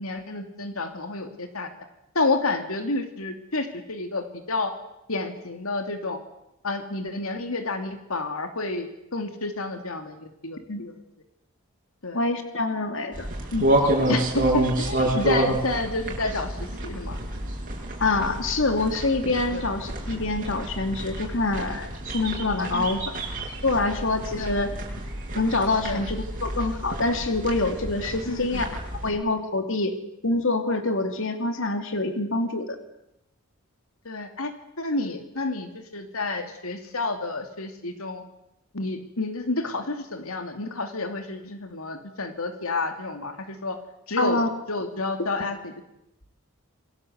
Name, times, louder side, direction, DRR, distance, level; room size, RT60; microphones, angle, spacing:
voice 1, 0.0-1.7 2.1-4.7 5.1-6.2 6.6-11.0 12.0-12.2 14.1-17.2 19.5-19.6 22.7-23.0 24.4-24.7 25.8-26.0 28.3-28.6 34.0-34.5 34.8-38.2 38.7-43.8 44.1-44.4 44.7-45.8, left 3 dB, 80° left, 6 dB, 2.7 m, -30 dB
voice 2, 12.1-13.7 18.0-23.2 23.6-24.7 25.3-28.7 29.0-29.9 30.2-32.8 44.2-44.5, left 2 dB, 60° left, 6 dB, 2.8 m, -26 dB
sound 1, 13.1-29.1, right 1 dB, 40° right, 7.4 m, -29 dB
27.5 x 23.0 x 8.0 m, 0.84 s
head